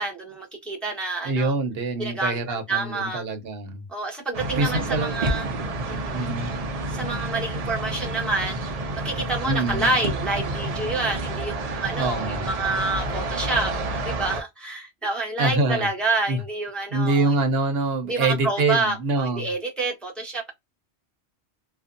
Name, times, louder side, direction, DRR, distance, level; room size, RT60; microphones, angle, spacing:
voice 1, 0.0-1.5 2.0-3.2 3.9-5.4 5.9-6.3 6.9-8.6 9.0-17.4 18.1-20.5, right 2 dB, ahead, 0.8 m, -28 dB
voice 2, 1.2-3.8 4.6-5.5 6.1-6.5 9.5-9.9 12.0-12.5 15.4-15.9 16.3-16.4 16.9-19.5, right 2 dB, 70° right, 0.9 m, -25 dB
sound 1, 4.3-14.4, right 2 dB, 50° right, 0.5 m, -29 dB
2.6 x 2.2 x 2.4 m
omnidirectional pair, 1.1 m